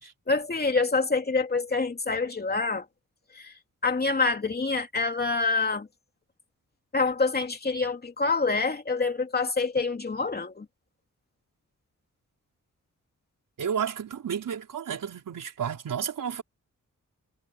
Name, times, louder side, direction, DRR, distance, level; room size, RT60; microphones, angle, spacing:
voice 1, 0.0-2.8 3.3-3.5 3.8-5.9 6.9-10.7, left 4 dB, 30° left, 3.0 m, -26 dB
voice 2, 13.6-16.4, right 8 dB, 75° right, 4.8 m, -32 dB
wide cardioid pair, 130°, 32 cm